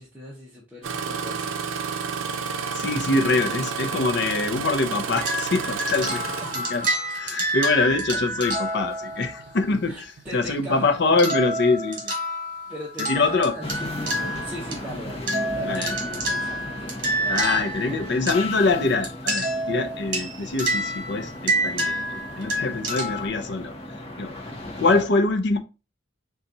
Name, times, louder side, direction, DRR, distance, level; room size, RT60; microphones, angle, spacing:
voice 1, 0.0-2.0 6.0-6.6 8.1-8.2 9.9-11.0 12.7-15.2 15.5-18.2, equal, 10° right, 0.8 m, -39 dB
Engine starting, 0.8-7.3 8.3-8.6 9.1-9.5 10.2-10.3, right 6 dB, 90° right, 0.5 m, -31 dB
voice 2, 2.7-6.2 6.5-6.9 7.2-12.1 13.0-13.6 15.6-15.9 17.3-23.7 24.2-24.4 24.8-25.6, left 3 dB, 60° left, 0.6 m, -24 dB
sound 1, 5.2-9.5 11.2-14.9 15.3-23.3, right 1 dB, 45° right, 1.3 m, -28 dB
sound 2, 13.6-25.0, left 1 dB, 30° left, 0.8 m, -36 dB
4.1 x 2.4 x 3.8 m
head